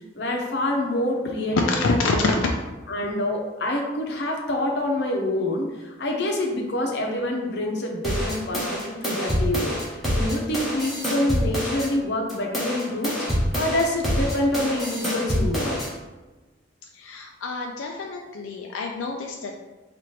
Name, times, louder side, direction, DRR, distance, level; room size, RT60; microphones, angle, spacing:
voice 1, 0.1-2.5 2.9-9.8 10.1-13.2 13.6-15.8, left 1 dB, 55° left, 0 dB, 0.7 m, -26 dB
voice 2, 1.5-2.4 16.9-19.6, left 3 dB, 90° left, 1 dB, 0.4 m, -26 dB
sound 1, 8.0-11.9 12.3-15.9, equal, ahead, 0.9 m, -26 dB
4.3 x 2.5 x 3.2 m, 1.2 s
head